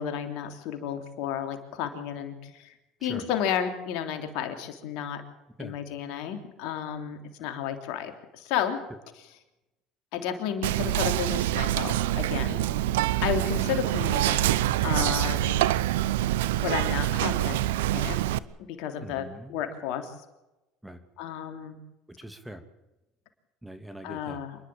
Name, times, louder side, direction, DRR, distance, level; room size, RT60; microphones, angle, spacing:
voice 1, 0.0-2.7 3.0-5.2 5.6-8.8 10.1-12.7 13.2-15.6 16.6-17.6 17.9-18.2 18.8-20.1 21.2-21.8 24.0-24.6, left 9 dB, 70° left, 6 dB, 3.3 m, -32 dB
Whispering, 10.6-18.4, right 14 dB, 90° right, 0.7 m, -25 dB
voice 2, 19.0-19.5 20.8-21.0 22.1-22.6 23.6-24.4, right 1 dB, 5° right, 8 dB, 2.6 m, -43 dB
27.5 x 11.0 x 8.8 m, 0.97 s
supercardioid pair, 85°, 0 cm